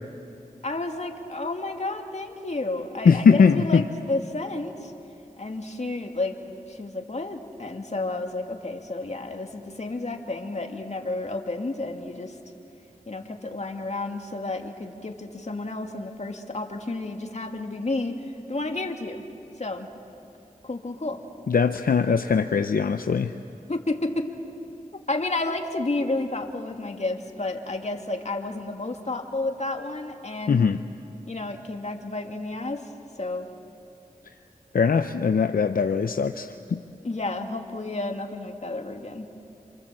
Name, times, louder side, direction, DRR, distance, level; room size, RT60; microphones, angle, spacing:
voice 1, 0.6-4.9 5.4-6.4 6.7-12.4 13.1-18.2 18.5-19.2 19.6-19.9 20.6-21.2 23.7-24.3 25.1-30.7 31.3-32.9 33.2-33.5 37.0-39.3, left 2 dB, 50° left, 4 dB, 2.3 m, -31 dB
voice 2, 3.0-3.8 21.5-23.3 30.5-30.8 34.7-36.8, left 5 dB, 80° left, 8 dB, 0.7 m, -21 dB
27.5 x 27.5 x 7.6 m, 2.6 s
cardioid pair, 40°, 15 cm